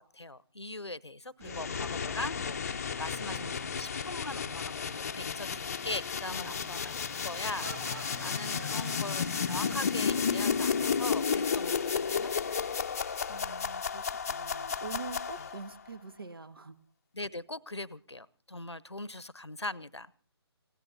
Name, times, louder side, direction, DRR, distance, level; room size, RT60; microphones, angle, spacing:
voice 1, 0.0-12.3 17.1-20.1, left 2 dB, 85° left, 19 dB, 0.9 m, -41 dB
sound 1, 1.4-15.7, left 6 dB, 35° left, 0.7 m, -33 dB
voice 2, 1.4-2.1 3.2-3.7 6.3-6.8 8.5-8.9 13.3-16.8, right 4 dB, 60° right, 11 dB, 1.6 m, -46 dB
sound 2, 7.5-11.1, right 4 dB, 40° right, 2.1 m, -48 dB
29.5 x 17.5 x 2.8 m, 0.41 s
figure-of-eight pair, 145°, 14 cm